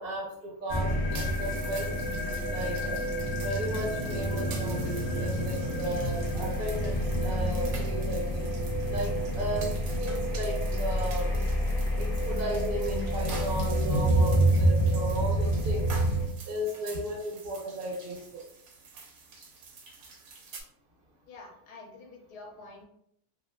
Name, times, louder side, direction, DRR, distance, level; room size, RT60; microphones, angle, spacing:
voice 1, 0.0-2.9 3.4-7.0 7.2-8.5 8.9-9.7 10.0-11.3 12.0-15.9 16.5-18.4, right 1 dB, 45° right, -3 dB, 0.9 m, -35 dB
sound 1, 0.7-16.3, equal, 45° left, 0.7 m, -28 dB
sound 2, 1.1-20.6, right 4 dB, 70° right, 1.0 m, -47 dB
voice 2, 21.3-22.8, left 3 dB, 80° left, 1 dB, 1.3 m, -47 dB
2.9 x 2.9 x 2.3 m, 0.73 s
omnidirectional pair, 1.7 m